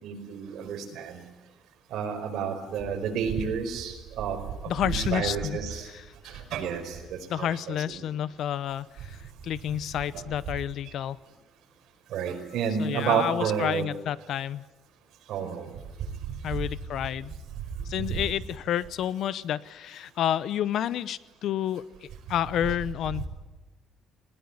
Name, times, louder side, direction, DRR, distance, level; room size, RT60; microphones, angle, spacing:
voice 1, 0.0-1.2 1.9-4.4 4.8-5.8 6.5-6.8 7.4-7.7 12.1-13.8 15.3-15.7 18.1-18.2, right 7 dB, 70° right, 4 dB, 4.9 m, -30 dB
voice 2, 4.7-6.0 7.3-11.2 12.8-14.6 16.4-17.3 17.9-23.2, left 10 dB, 60° left, 18 dB, 0.8 m, -30 dB
21.0 x 19.0 x 9.9 m, 1.2 s
cardioid pair, 140°, 0 cm